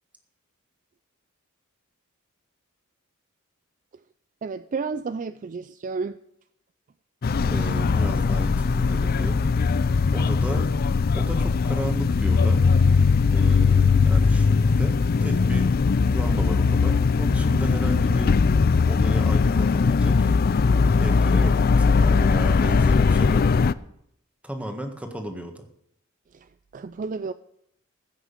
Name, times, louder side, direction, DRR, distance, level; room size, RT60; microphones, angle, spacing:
voice 1, 4.4-6.2 26.3-27.3, right 4 dB, 40° right, 0.4 m, -32 dB
sound 1, 7.2-23.7, left 4 dB, 45° left, 0.4 m, -20 dB
voice 2, 7.5-9.5 10.1-10.7 11.1-12.6 13.3-15.7 16.1-18.4 18.9-20.3 21.0-23.5 24.4-25.6, equal, 5° right, 1.6 m, -34 dB
15.5 x 6.3 x 8.2 m
head